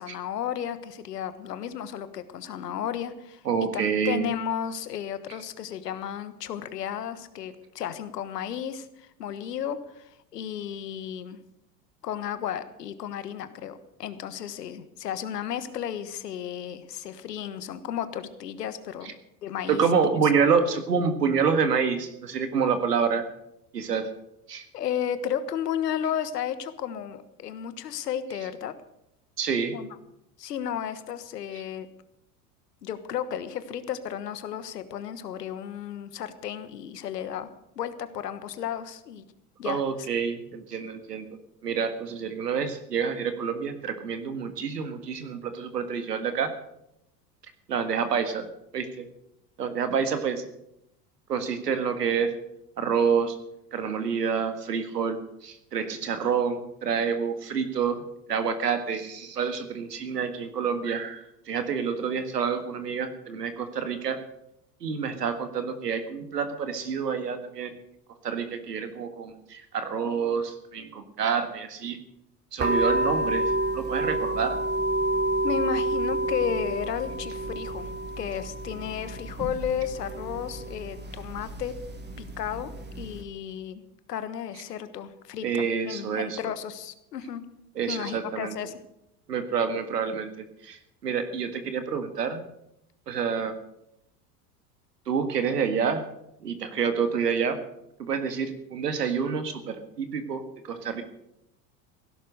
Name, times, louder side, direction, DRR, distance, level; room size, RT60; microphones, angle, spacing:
voice 1, 0.0-3.4 3.7-11.4 12.0-19.1 19.4-19.9 24.7-28.7 29.7-30.0 30.4-31.9 32.8-37.5 37.8-39.2 39.6-39.8 75.4-77.9 78.2-81.7 82.4-82.7 83.0-83.8 84.1-87.4 87.9-88.8, left 9 dB, 80° left, 12 dB, 1.4 m, -33 dB
voice 2, 3.5-4.2 19.7-23.3 23.7-24.1 24.5-24.6 29.4-29.8 39.6-41.3 41.6-46.5 47.7-48.4 48.7-49.1 49.6-50.4 51.3-52.3 52.8-53.4 53.7-58.0 58.3-64.2 64.8-67.8 68.2-72.0 72.5-73.5 73.7-74.6 85.4-86.4 87.8-88.6 89.3-90.3 90.6-90.8 91.0-92.4 93.1-93.5 95.1-96.0 96.4-97.6 98.0-101.0, right 6 dB, 85° right, 8 dB, 1.8 m, -27 dB
sound 1, 72.6-83.2, right 1 dB, 20° right, 2.6 m, -29 dB
16.5 x 11.5 x 6.5 m, 0.82 s
hypercardioid pair, 80°, 47 cm